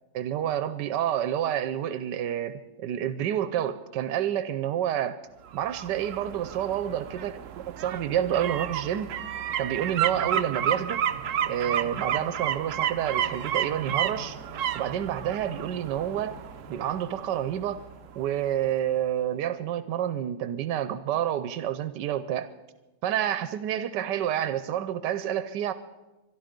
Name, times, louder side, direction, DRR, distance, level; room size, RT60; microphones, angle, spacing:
voice 1, 0.1-5.2 5.5-9.1 9.6-11.0 11.5-14.4 14.7-16.4 16.7-17.8 18.2-22.5 23.0-25.7, right 10 dB, 85° right, 13 dB, 1.3 m, -29 dB
sound 1, 5.5-18.3 18.7-18.8, right 10 dB, 60° right, 0.9 m, -32 dB
sound 2, 8.2-19.0, left 8 dB, 80° left, 2.2 m, -50 dB
24.0 x 11.5 x 5.2 m, 1.1 s
omnidirectional pair, 1.8 m